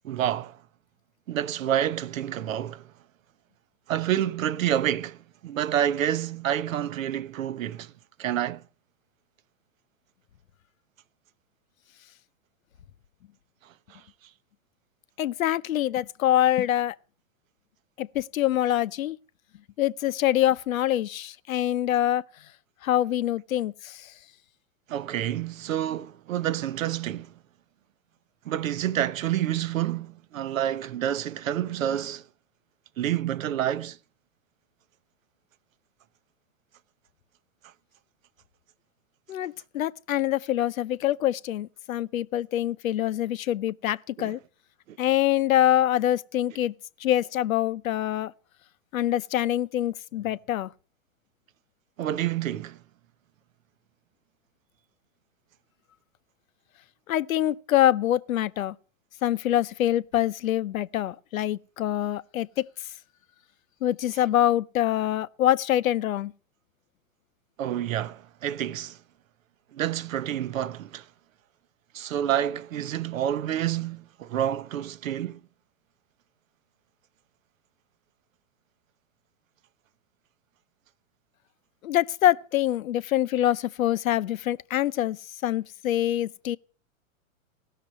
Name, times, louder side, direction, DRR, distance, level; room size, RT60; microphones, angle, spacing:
voice 1, 0.0-0.6 1.3-2.8 3.9-7.9 8.2-8.6 13.9-14.0 24.9-27.3 28.4-32.2 33.0-34.0 44.2-44.3 44.9-45.0 52.0-52.8 67.6-69.0 69.7-71.0 71.9-75.4, right 11 dB, 70° right, 0.9 m, -28 dB
voice 2, 15.2-16.9 18.0-19.2 19.8-22.2 22.8-24.1 39.3-44.4 45.0-46.7 47.0-48.3 48.9-50.7 57.1-58.7 59.2-62.7 63.8-66.3 81.8-86.6, left 12 dB, 75° left, 0.7 m, -25 dB
17.0 x 6.7 x 8.5 m
hypercardioid pair, 125°, 41 cm